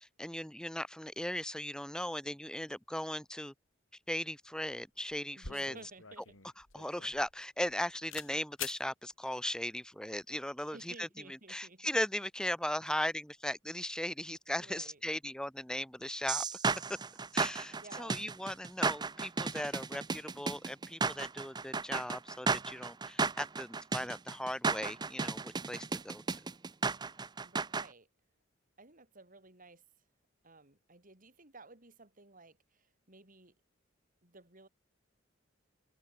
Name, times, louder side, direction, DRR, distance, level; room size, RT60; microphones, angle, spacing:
voice 1, 0.0-3.5 4.1-5.7 6.7-16.7 17.3-26.2, left 1 dB, 5° left, 1.5 m, -38 dB
sound 1, 5.4-7.8 8.1-8.3 8.6-8.8, left 8 dB, 90° left, 3.9 m, -45 dB
voice 2, 5.4-6.4 10.7-11.9 14.6-15.0 17.7-18.2 27.4-28.1 28.8-29.8 30.4-33.5 34.2-34.7, right 3 dB, 45° right, 6.4 m, -55 dB
sound 2, 16.3-27.9, right 4 dB, 20° right, 0.6 m, -34 dB
head